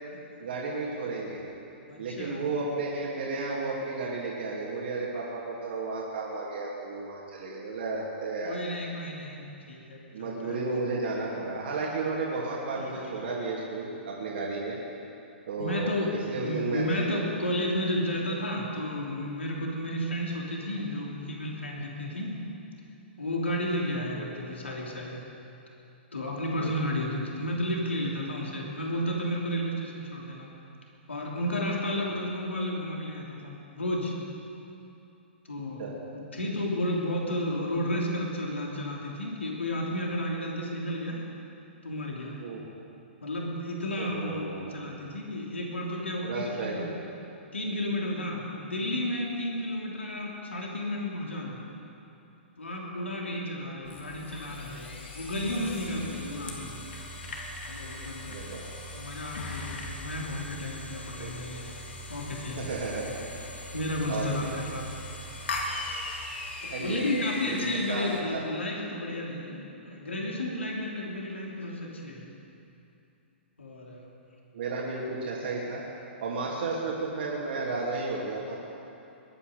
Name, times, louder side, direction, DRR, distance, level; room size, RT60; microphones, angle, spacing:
voice 1, 0.4-1.4 2.0-8.6 10.1-14.8 15.5-17.0 24.1-24.3 26.6-26.9 31.9-32.2 35.8-36.0 42.4-42.6 44.0-44.8 46.2-46.9 58.2-58.7 61.2-61.4 62.6-63.2 64.1-64.5 66.7-67.0 67.4-68.0 68.3-68.4 74.5-75.8 76.2-78.6, right 3 dB, 60° right, -4 dB, 2.8 m, -33 dB
voice 2, 1.9-2.4 8.4-10.7 12.7-13.1 15.6-16.1 16.4-22.4 23.2-25.2 26.1-30.5 31.1-34.1 35.4-35.8 36.1-41.2 41.8-42.4 43.2-46.9 47.5-51.6 52.6-56.8 57.6-58.4 58.9-61.7 62.1-62.8 63.7-65.1 66.6-72.3 73.6-74.1, left 1 dB, 85° left, -2 dB, 3.0 m, -32 dB
sound 1, 53.8-68.2, left 2 dB, 70° left, 3.0 m, -39 dB
21.5 x 9.9 x 6.7 m, 2.8 s
figure-of-eight pair, 120°, 6 cm